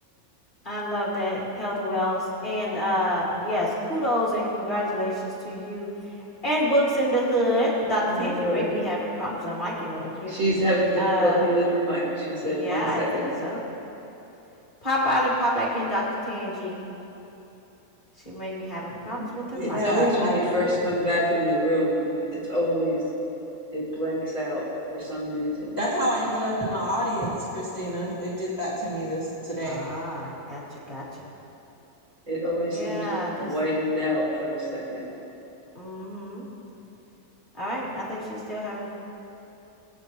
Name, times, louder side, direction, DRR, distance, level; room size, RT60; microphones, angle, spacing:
voice 1, 0.6-6.1 6.4-10.3 11.0-11.4 12.4-13.6 14.8-16.8 18.2-19.8 29.6-30.6 30.9-31.3 32.7-33.5 35.7-36.5 37.6-38.9, equal, 35° left, -6 dB, 2.9 m, -27 dB
voice 2, 8.1-8.8 10.3-13.2 19.6-22.0 22.4-23.0 23.7-24.6 24.9-25.7 32.3-33.1 33.4-35.0, equal, 55° right, -7 dB, 3.9 m, -26 dB
voice 3, 19.5-20.7 25.8-29.8, equal, 15° left, -7 dB, 2.0 m, -28 dB
23.0 x 8.9 x 3.2 m, 3.0 s
omnidirectional pair, 1.6 m